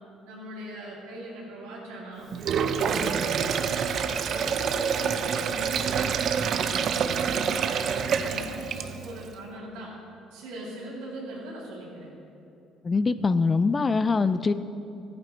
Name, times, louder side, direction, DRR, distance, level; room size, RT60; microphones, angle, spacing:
voice 1, 0.3-2.3 2.7-9.9 10.3-12.1, right 1 dB, 85° right, -5 dB, 2.7 m, -39 dB
Sink (filling or washing), 2.3-9.2, right 7 dB, 60° right, 0.5 m, -27 dB
voice 2, 12.8-14.5, left 4 dB, 30° left, 13 dB, 0.4 m, -23 dB
14.0 x 9.4 x 3.1 m, 2.7 s
supercardioid pair, 70°, 0 cm